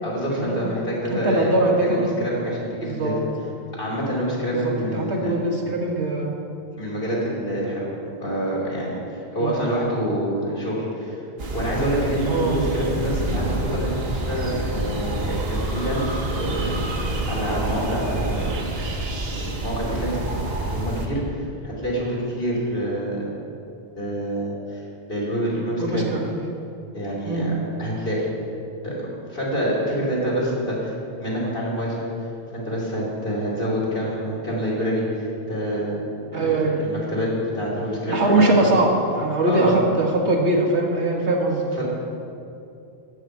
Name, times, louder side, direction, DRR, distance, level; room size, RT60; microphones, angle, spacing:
voice 1, 0.0-1.5 1.8-3.1 3.8-5.3 6.8-7.9 8.2-11.1 11.5-18.5 19.3-20.3 20.6-23.3 24.0-24.8 25.1-26.0 26.9-28.2 28.8-29.0 29.3-30.9 31.2-32.1 32.5-38.7 39.4-39.8 41.8-41.9, equal, 55° left, -5 dB, 3.1 m, -27 dB
voice 2, 1.1-2.1 2.8-3.2 4.5-6.4 9.4-9.5 12.3-12.6 25.8-26.2 27.2-27.5 36.3-36.8 38.1-41.7, right 2 dB, 85° right, -1 dB, 1.8 m, -22 dB
sound 1, 11.4-21.1, right 2 dB, 65° right, 1.3 m, -27 dB
12.0 x 4.9 x 8.4 m, 2.7 s
omnidirectional pair, 1.1 m